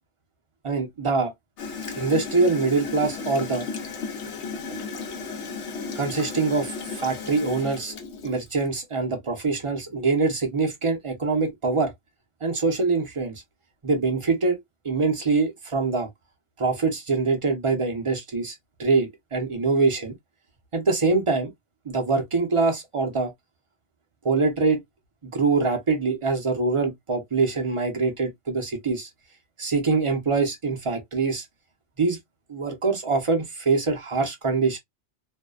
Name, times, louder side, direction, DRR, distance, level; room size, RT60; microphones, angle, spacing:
voice 1, 0.6-1.3 2.0-3.7 6.0-7.9 8.2-11.9 12.4-13.4 13.8-14.6 14.8-16.1 16.6-20.1 20.7-21.5 21.8-23.3 24.2-24.8 25.3-29.1 29.6-31.5 32.0-32.2 32.5-34.8, right 4 dB, 35° right, 0.6 m, -24 dB
Gurgling / Toilet flush, 1.6-8.7, left 5 dB, 85° left, 0.9 m, -34 dB
2.6 x 2.1 x 2.2 m
omnidirectional pair, 1.2 m